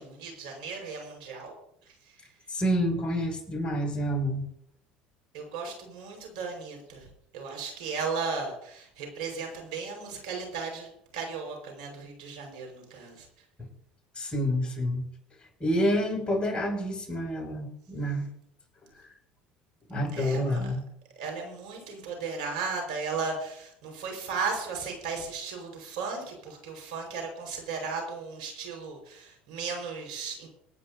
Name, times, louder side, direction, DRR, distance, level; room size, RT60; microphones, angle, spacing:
voice 1, 0.0-1.5 1.8-2.1 5.3-7.1 7.3-10.9 11.1-13.3 20.1-20.7 21.2-30.5, right 4 dB, 80° right, 2 dB, 4.6 m, -35 dB
voice 2, 2.5-4.5 14.2-15.0 15.6-18.3 19.0-19.1 19.9-20.8, equal, 25° left, 2 dB, 5.8 m, -28 dB
26.0 x 9.4 x 2.7 m, 0.72 s
hypercardioid pair, 75°, 4 cm